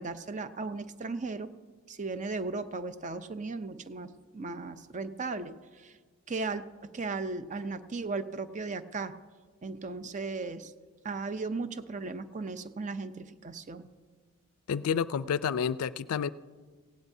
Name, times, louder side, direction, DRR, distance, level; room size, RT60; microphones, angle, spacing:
voice 1, 0.0-1.5 1.9-6.0 6.3-9.2 9.6-10.7 11.0-13.9, right 3 dB, 35° right, 11 dB, 0.5 m, -36 dB
voice 2, 14.7-16.3, left 7 dB, 80° left, 17 dB, 0.4 m, -29 dB
18.0 x 16.5 x 2.7 m, 1.5 s
head